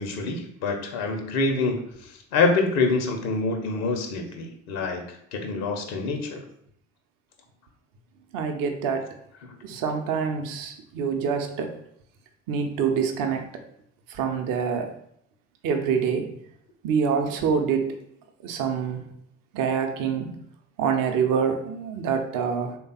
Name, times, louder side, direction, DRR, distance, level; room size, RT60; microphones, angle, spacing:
voice 1, 0.0-5.0 5.3-6.4 9.4-9.6, left 3 dB, 70° left, 5 dB, 0.6 m, -26 dB
voice 2, 8.3-9.1 9.6-11.8 12.5-13.5 14.1-14.9 15.6-16.3 16.8-17.9 18.4-19.1 19.5-20.4 20.8-22.8, right 6 dB, 55° right, 4 dB, 0.6 m, -26 dB
3.3 x 2.2 x 4.0 m, 0.70 s
figure-of-eight pair, 45°, 40 cm